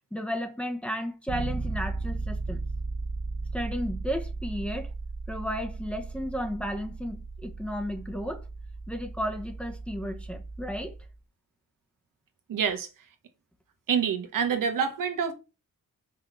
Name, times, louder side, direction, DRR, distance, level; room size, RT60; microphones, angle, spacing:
voice 1, 0.1-2.6 3.5-4.9 5.3-8.4 8.9-11.0, equal, 5° left, 1.0 m, -33 dB
Bass guitar, 1.3-11.1, right 3 dB, 50° right, 1.6 m, -36 dB
voice 2, 12.5-12.9 13.9-15.3, right 7 dB, 85° right, 1.5 m, -27 dB
6.0 x 5.5 x 5.7 m
wide cardioid pair, 165°, 32 cm